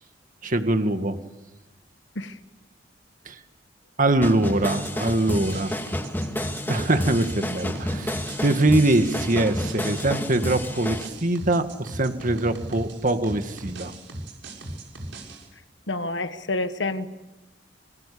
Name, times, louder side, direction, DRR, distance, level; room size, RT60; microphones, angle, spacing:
voice 1, 0.4-1.2 3.3-3.4 4.0-5.8 6.7-13.9, right 2 dB, 45° right, 8 dB, 1.9 m, -23 dB
sound 1, 4.2-11.1, left 1 dB, 10° left, 2.0 m, -30 dB
sound 2, 4.5-15.5, right 1 dB, 85° right, 6.7 m, -38 dB
voice 2, 15.9-17.2, left 2 dB, 75° left, 10 dB, 1.5 m, -28 dB
27.0 x 25.0 x 8.6 m, 1.1 s
head